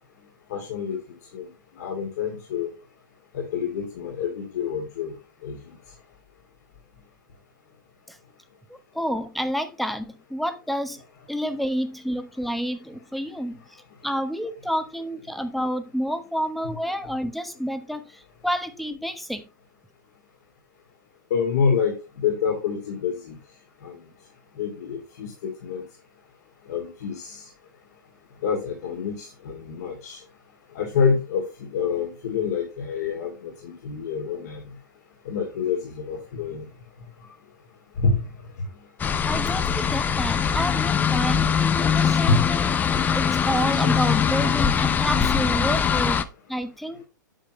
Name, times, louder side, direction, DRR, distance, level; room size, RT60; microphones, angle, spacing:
voice 1, 0.5-1.0 1.3-1.5 1.7-2.7 3.3-5.1 5.4-5.6 16.6-16.7 21.3-23.4 23.8-24.0 24.6-25.8 26.7-27.5 28.4-30.2 30.7-34.6 35.2-36.7 38.0-38.3 42.3-42.4 43.8-44.0 44.3-44.7 45.1-45.3, left 5 dB, 55° left, 2.5 m, -27 dB
voice 2, 8.9-11.0 11.3-13.6 14.0-19.4 39.2-42.7 43.1-46.2 46.5-47.0, equal, ahead, 1.0 m, -29 dB
sound 1, 39.0-46.2, left 7 dB, 15° left, 0.7 m, -22 dB
8.9 x 7.4 x 3.0 m
figure-of-eight pair, 105°, 10 cm